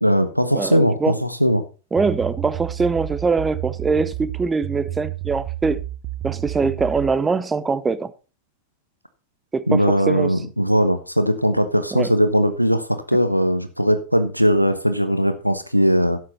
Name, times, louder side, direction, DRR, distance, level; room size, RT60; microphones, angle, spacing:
voice 1, 0.0-1.6 9.7-16.2, equal, 90° right, 1.0 m, -19 dB
voice 2, 0.5-1.1 1.9-5.8 6.2-8.1 9.5-10.3 11.9-12.1, right 4 dB, 15° right, 0.8 m, -23 dB
sound 1, 2.0-7.2, right 14 dB, 40° right, 1.0 m, -30 dB
12.0 x 8.4 x 4.2 m
figure-of-eight pair, 90°, 0 cm